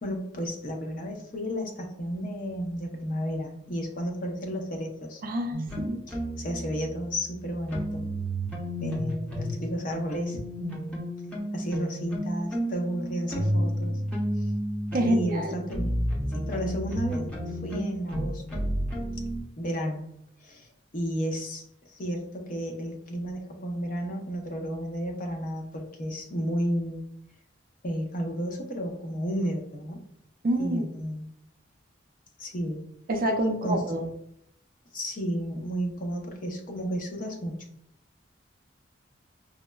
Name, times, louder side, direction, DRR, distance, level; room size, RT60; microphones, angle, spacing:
voice 1, 0.0-5.2 6.1-8.0 8.8-11.0 11.5-13.9 14.4-14.5 15.1-16.0 16.3-18.6 19.6-20.1 20.4-27.1 27.8-30.0 30.6-31.3 32.4-32.8 33.6-33.8 34.9-37.6, equal, 45° left, 2 dB, 0.6 m, -32 dB
voice 2, 5.2-6.0 14.9-15.5 30.4-30.9 33.1-34.1, right 1 dB, 50° right, 4 dB, 0.4 m, -27 dB
sound 1, 5.5-9.6 9.9-19.4, equal, 5° left, 0.7 m, -32 dB
4.9 x 2.1 x 2.2 m, 0.74 s
head